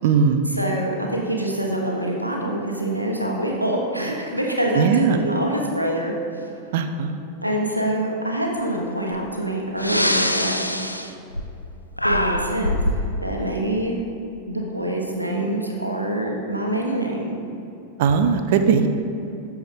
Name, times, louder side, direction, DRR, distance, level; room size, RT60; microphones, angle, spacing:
voice 1, 0.0-0.5 4.7-5.2 6.7-7.2 18.0-18.9, right 6 dB, 55° right, 8 dB, 0.6 m, -19 dB
voice 2, 0.6-6.1 7.4-10.6 12.0-12.8 13.2-14.1 14.5-17.4, right 1 dB, 85° right, -1 dB, 1.2 m, -25 dB
Breathing, 9.1-9.3 9.7-11.7 12.0-13.1, left 1 dB, 85° left, 0.4 m, -23 dB
13.5 x 4.6 x 3.7 m, 2.8 s
figure-of-eight pair, 90°, 0 cm